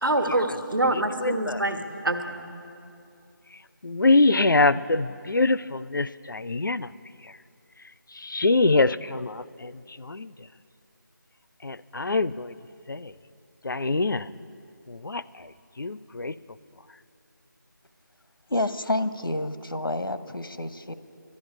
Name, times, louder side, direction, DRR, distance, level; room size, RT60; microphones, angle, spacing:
voice 1, 0.0-2.5, right 1 dB, 75° right, 6 dB, 1.4 m, -26 dB
voice 2, 0.9-1.6 3.8-6.9 8.2-9.7 10.0-10.3 11.6-12.5 12.9-13.1 13.6-14.3 14.9-15.2 15.8-16.3, left 3 dB, 70° left, 16 dB, 0.4 m, -24 dB
voice 3, 18.5-20.9, left 1 dB, 90° left, 12 dB, 0.8 m, -29 dB
12.0 x 11.0 x 8.5 m, 2.5 s
figure-of-eight pair, 165°, 11 cm